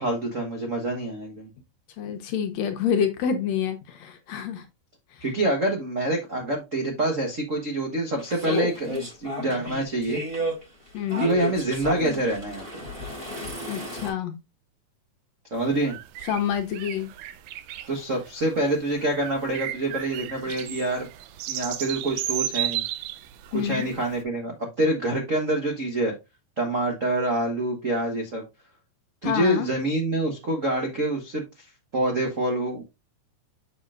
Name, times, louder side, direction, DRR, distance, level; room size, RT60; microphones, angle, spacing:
voice 1, 0.0-1.5 5.2-10.2 11.2-12.8 15.5-16.0 17.9-21.1 21.5-22.8 23.5-26.1 26.6-28.4 29.2-31.4 31.9-32.8, right 1 dB, 60° right, 0.8 m, -26 dB
voice 2, 2.0-4.6 10.9-11.3 13.7-14.3 16.3-17.1 23.5-23.9 29.2-29.7, left 8 dB, 70° left, 2.0 m, -27 dB
sound 1, 8.2-14.1, equal, 15° right, 4.3 m, -32 dB
sound 2, 15.6-24.2, right 13 dB, 80° right, 2.1 m, -34 dB
6.8 x 6.8 x 2.4 m
omnidirectional pair, 3.6 m